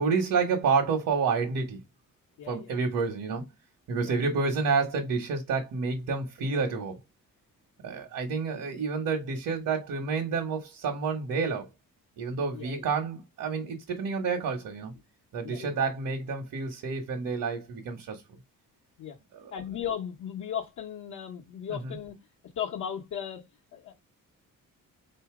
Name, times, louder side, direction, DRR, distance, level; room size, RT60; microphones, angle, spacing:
voice 1, 0.0-1.8 2.5-3.5 3.9-7.0 7.8-11.7 12.2-14.9 15.3-18.2 19.3-19.5 21.7-22.0, right 5 dB, 65° right, 1.1 m, -29 dB
voice 2, 2.4-2.8 4.0-4.2 12.5-12.9 15.4-15.7 19.0-19.2 19.5-22.1 22.6-23.4 23.7-23.9, left 9 dB, 60° left, 1.0 m, -36 dB
3.9 x 2.8 x 4.7 m
cardioid pair, 170°, 33 cm